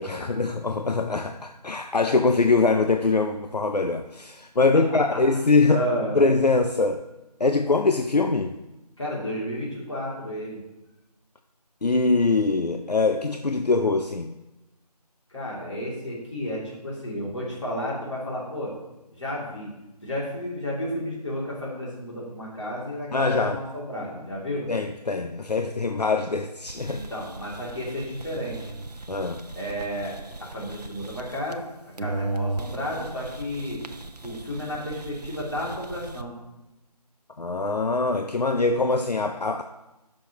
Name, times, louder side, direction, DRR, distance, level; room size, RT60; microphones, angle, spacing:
voice 1, 0.0-5.8 6.1-7.0 7.4-8.6 11.8-14.3 23.1-23.6 24.7-27.0 29.1-29.5 37.4-39.6, left 3 dB, 75° left, 6 dB, 0.6 m, -23 dB
voice 2, 5.7-6.1 9.0-10.6 15.3-18.7 19.1-19.7 20.0-24.7 26.8-28.7 29.5-33.8 34.2-36.4, equal, 45° left, -4 dB, 3.0 m, -32 dB
sound 1, 26.7-31.7 32.0-36.2, right 2 dB, 70° right, 0.7 m, -37 dB
14.0 x 6.3 x 3.0 m, 0.98 s
figure-of-eight pair, 165°, 21 cm